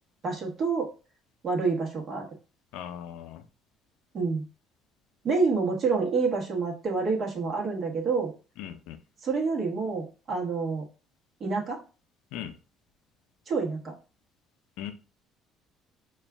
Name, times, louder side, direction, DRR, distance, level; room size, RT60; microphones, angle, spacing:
voice 1, 0.2-0.9 1.4-2.3 4.1-4.4 5.2-8.3 9.2-10.8 11.4-11.8 13.5-13.9, right 4 dB, 40° right, 0 dB, 1.2 m, -27 dB
voice 2, 2.7-3.5 8.6-9.0 12.3-12.5 14.8-14.9, left 10 dB, 85° left, 8 dB, 0.5 m, -38 dB
4.3 x 2.4 x 3.4 m, 0.34 s
cardioid pair, 120°, 0 cm